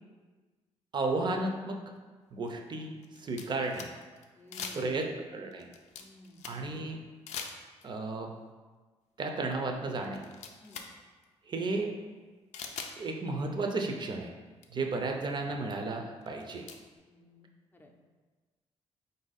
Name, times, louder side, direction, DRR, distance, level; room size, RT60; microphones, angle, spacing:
voice 1, 0.9-1.8 2.3-2.9 3.2-3.9 4.7-5.1 5.3-5.7 6.5-7.0 7.8-8.3 9.2-10.2 11.5-11.9 13.0-14.3 14.7-16.7, right 3 dB, 40° right, 3 dB, 0.6 m, -33 dB
sound 1, 1.4-1.5 2.4-4.3 4.5-5.1 5.5-6.8 7.3-8.0 9.4-9.5 9.9-10.9 11.2-11.3 12.5-13.0 14.2-14.3 14.6-14.7 15.2-15.3 16.2-16.8, left 6 dB, 80° left, 0.4 m, -43 dB
voice 2, 4.3-5.0 6.0-6.4 10.6-10.8 17.0-17.9, left 1 dB, 15° left, 2 dB, 0.5 m, -53 dB
4.3 x 2.7 x 4.0 m, 1.4 s
cardioid pair, 85°, 12 cm